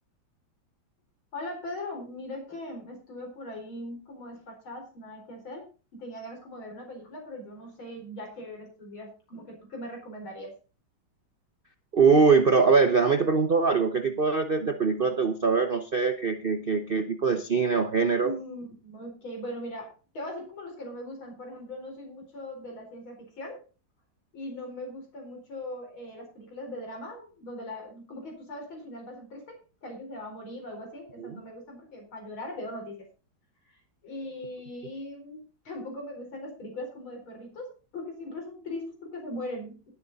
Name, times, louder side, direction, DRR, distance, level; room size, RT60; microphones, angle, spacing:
voice 1, 1.3-10.5 18.2-23.6 24.3-33.1 33.7-39.9, left 1 dB, 90° left, 1 dB, 5.1 m, -40 dB
voice 2, 11.9-18.3 31.2-31.4, right 5 dB, 50° right, 7 dB, 0.6 m, -23 dB
20.0 x 7.1 x 4.0 m, 0.34 s
omnidirectional pair, 2.2 m